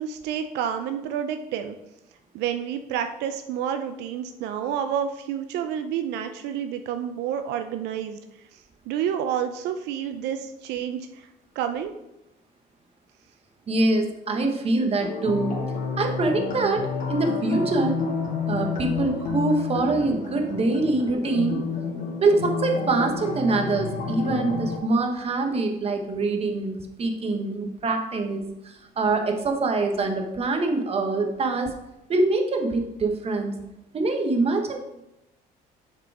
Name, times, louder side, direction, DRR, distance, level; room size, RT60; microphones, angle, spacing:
voice 1, 0.0-1.8 2.3-8.2 8.5-8.6 8.9-11.3 11.6-11.9, right 9 dB, 85° right, 8 dB, 0.5 m, -29 dB
voice 2, 13.7-15.5 16.0-18.0 18.5-21.6 22.2-31.7 32.1-33.5 33.9-34.8, right 3 dB, 35° right, 4 dB, 1.2 m, -24 dB
sound 1, 15.0-24.8, left 4 dB, 50° left, 2.3 m, -30 dB
6.8 x 4.9 x 4.8 m, 0.90 s
cardioid pair, 110°, 17 cm